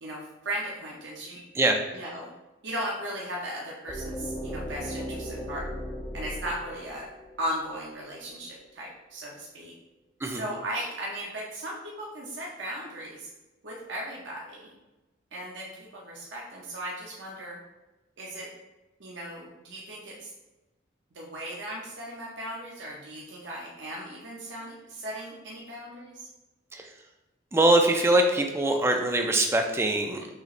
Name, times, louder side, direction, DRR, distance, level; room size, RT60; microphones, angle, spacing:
voice 1, 0.0-1.6 1.9-2.3 2.6-5.7 6.1-7.1 7.4-9.7 10.3-13.3 13.6-14.7 15.3-17.6 18.2-18.5 19.0-20.3 21.1-26.3, right 1 dB, 65° right, -4 dB, 0.7 m, -37 dB
sound 1, 3.9-7.8, equal, 15° left, 0.7 m, -37 dB
voice 2, 27.5-30.3, right 1 dB, 15° right, 4 dB, 0.3 m, -23 dB
6.3 x 3.0 x 2.5 m, 1.1 s
head